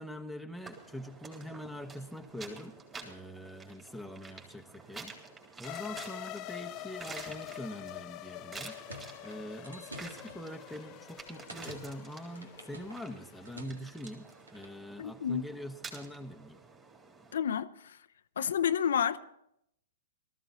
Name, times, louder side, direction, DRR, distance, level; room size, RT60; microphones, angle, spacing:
voice 1, 0.0-2.7 3.0-5.2 5.6-8.7 9.2-16.6, equal, ahead, 1.2 m, -44 dB
sound 1, 0.6-17.4, right 3 dB, 20° right, 3.5 m, -50 dB
sound 2, 5.6-13.6, left 15 dB, 35° left, 0.8 m, -46 dB
sound 3, 8.4-14.8, right 1 dB, 85° right, 2.0 m, -51 dB
voice 2, 15.0-15.4 17.3-18.0 18.4-19.2, left 8 dB, 70° left, 0.7 m, -30 dB
18.5 x 14.0 x 4.2 m
figure-of-eight pair, 110°, 0 cm